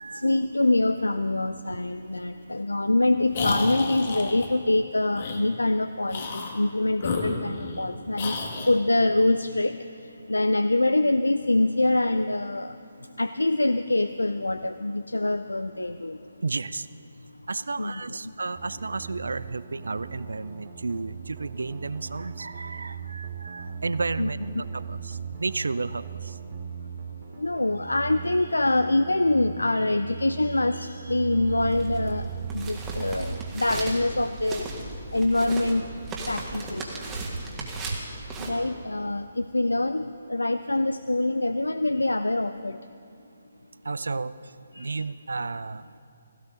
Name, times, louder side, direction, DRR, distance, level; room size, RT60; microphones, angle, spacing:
voice 1, 0.1-8.4 8.7-9.8 10.3-12.7 13.2-16.2 17.8-18.2 24.2-24.6 27.4-32.3 32.5-34.7 35.1-35.8 36.3-37.0 38.4-42.8 44.7-45.1, left 2 dB, 85° left, 11 dB, 0.4 m, -25 dB
sound 1, 3.3-4.5 5.1-5.4 6.1-6.6 7.0-7.8 8.2-8.8, left 3 dB, 45° left, 1.6 m, -31 dB
voice 2, 16.4-16.9 17.5-24.4 24.7-26.3 37.9-38.0 43.8-44.3 44.8-46.0, right 3 dB, 70° right, 16 dB, 0.4 m, -32 dB
sound 2, 18.5-33.5, right 7 dB, 35° right, 1.0 m, -39 dB
sound 3, 31.3-38.5, right 2 dB, 15° right, 1.8 m, -36 dB
16.5 x 15.5 x 3.8 m, 2.6 s
figure-of-eight pair, 140°, 0 cm